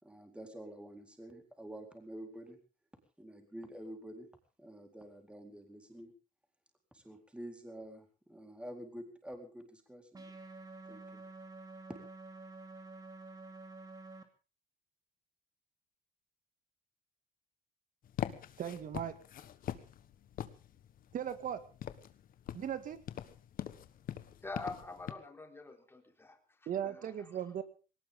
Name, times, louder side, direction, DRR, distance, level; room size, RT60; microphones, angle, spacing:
voice 1, 0.0-2.6 3.2-4.3 4.6-6.1 6.9-10.4 10.9-11.2, right 1 dB, 5° right, 4 dB, 4.2 m, -48 dB
sound 1, 10.1-14.2, right 3 dB, 20° right, 2.8 m, -49 dB
sound 2, 18.0-25.1, left 10 dB, 55° left, 1.4 m, -43 dB
voice 2, 18.6-19.2 21.1-21.6 22.5-23.0 26.7-27.6, right 9 dB, 50° right, 11 dB, 2.1 m, -37 dB
voice 3, 24.4-27.3, left 3 dB, 15° left, 4 dB, 3.9 m, -46 dB
20.0 x 18.5 x 3.8 m, 0.35 s
cardioid pair, 110°, 17 cm